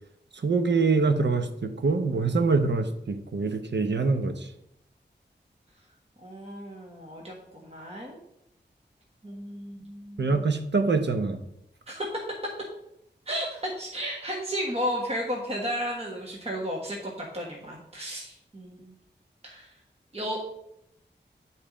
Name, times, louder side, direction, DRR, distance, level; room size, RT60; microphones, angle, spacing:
voice 1, 0.4-4.3 10.2-11.4, right 4 dB, 70° right, 7 dB, 0.8 m, -24 dB
voice 2, 6.2-8.2 9.2-10.4 11.9-12.2 13.3-18.9 19.4-19.7 20.1-20.4, equal, 35° right, -2 dB, 1.4 m, -33 dB
8.8 x 4.3 x 5.0 m, 0.79 s
wide cardioid pair, 85°, 19 cm